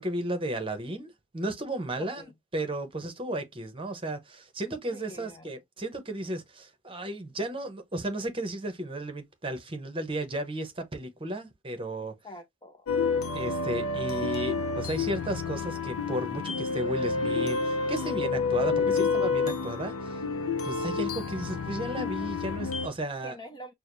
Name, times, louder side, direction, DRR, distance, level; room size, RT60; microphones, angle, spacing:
voice 1, 0.0-12.1 13.3-20.2 20.6-23.4, right 1 dB, 25° right, 0.8 m, -34 dB
voice 2, 4.9-5.5 12.2-12.9 18.9-19.0 23.2-23.7, left 1 dB, 20° left, 0.5 m, -44 dB
sound 1, 12.9-22.9, left 4 dB, 80° left, 0.8 m, -29 dB
6.3 x 2.1 x 2.5 m
head